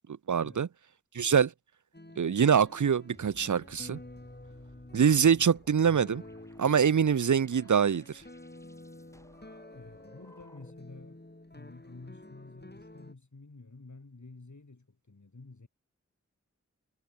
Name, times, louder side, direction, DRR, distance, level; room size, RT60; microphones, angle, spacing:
voice 1, 0.3-0.7 1.1-1.5 2.2-4.0 4.9-6.2 6.6-8.0, right 7 dB, 85° right, 0.6 m, -24 dB
sound 1, 1.9-13.1, left 1 dB, 35° left, 7.7 m, -50 dB
sound 2, 3.1-10.9, equal, 10° left, 7.6 m, -59 dB
voice 2, 9.7-11.2 11.5-15.7, left 3 dB, 80° left, 4.3 m, -50 dB
wide cardioid pair, 45°, 29 cm